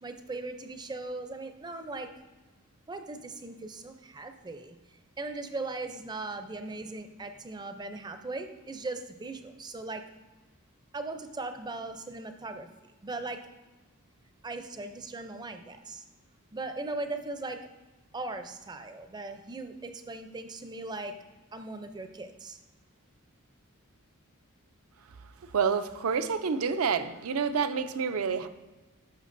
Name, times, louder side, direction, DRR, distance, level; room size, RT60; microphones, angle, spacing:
voice 1, 0.0-2.1 2.9-4.8 5.2-10.0 10.9-12.7 13.0-13.4 14.4-16.0 16.5-17.6 18.1-21.2 21.5-22.6, right 2 dB, 20° right, 8 dB, 0.4 m, -38 dB
voice 2, 25.5-28.5, right 6 dB, 75° right, 10 dB, 0.5 m, -28 dB
10.5 x 6.0 x 2.6 m, 1.2 s
head